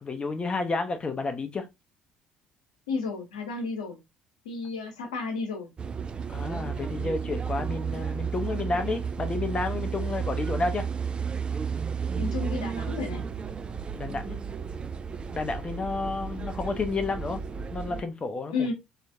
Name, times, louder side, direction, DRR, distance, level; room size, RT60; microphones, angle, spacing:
voice 1, 0.0-1.7 6.3-10.9 13.9-14.4 15.3-17.4 17.7-18.7, left 3 dB, 30° left, 0.6 m, -31 dB
voice 2, 2.9-4.0 4.4-5.7 12.1-13.2 18.5-18.7, left 4 dB, 75° left, 0.9 m, -32 dB
sound 1, 5.8-18.0, right 6 dB, 25° right, 0.3 m, -32 dB
3.2 x 2.9 x 2.6 m
figure-of-eight pair, 55°, 4 cm